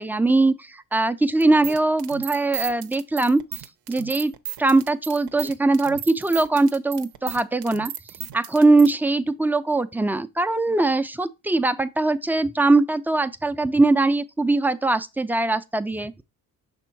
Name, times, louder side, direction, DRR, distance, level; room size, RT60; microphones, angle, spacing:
voice 1, 0.0-3.4 3.9-4.3 4.6-7.9 8.3-16.2, right 2 dB, 5° right, 0.3 m, -21 dB
sound 1, 1.4-8.9, right 13 dB, 80° right, 0.7 m, -35 dB
6.0 x 3.6 x 4.4 m
cardioid pair, 85°, 36 cm